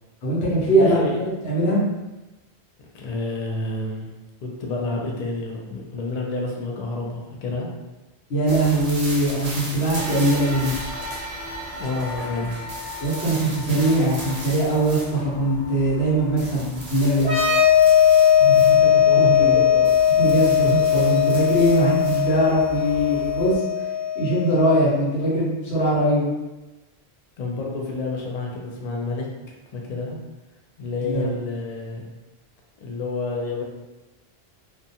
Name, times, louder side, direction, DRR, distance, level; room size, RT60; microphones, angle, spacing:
voice 1, 0.2-1.8 8.3-10.7 13.0-17.3 19.2-19.6 20.2-23.6 24.1-26.3 31.0-31.3, right 1 dB, 85° left, -6 dB, 1.1 m, -21 dB
voice 2, 0.8-1.2 2.9-4.1 4.4-7.7 11.7-12.6 18.4-19.9 27.4-29.3 29.7-30.2 30.8-32.0 32.8-33.6, left 2 dB, 55° left, -1 dB, 0.5 m, -29 dB
sound 1, 8.5-23.6, right 1 dB, 45° right, 0.6 m, -38 dB
sound 2, 10.0-18.6 19.2-19.3 20.4-20.5, left 1 dB, 85° right, 0.8 m, -38 dB
sound 3, 17.2-24.7, left 9 dB, 30° left, 0.9 m, -18 dB
2.4 x 2.2 x 2.7 m, 1.1 s
omnidirectional pair, 1.1 m